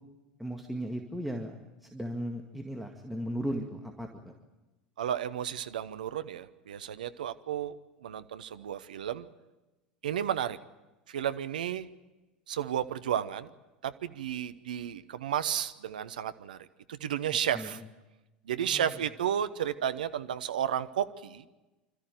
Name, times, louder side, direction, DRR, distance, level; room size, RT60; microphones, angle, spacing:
voice 1, 0.4-1.6 1.8-4.1 17.5-17.8 18.6-19.0, equal, ahead, 1 dB, 2.0 m, -36 dB
voice 2, 5.0-7.8 8.0-9.3 10.0-10.6 11.1-11.9 12.5-13.5 13.8-16.6 16.9-17.8 18.5-21.5, right 9 dB, 75° right, 12 dB, 0.9 m, -32 dB
26.0 x 14.0 x 9.1 m, 1.1 s
figure-of-eight pair, 80°, 5 cm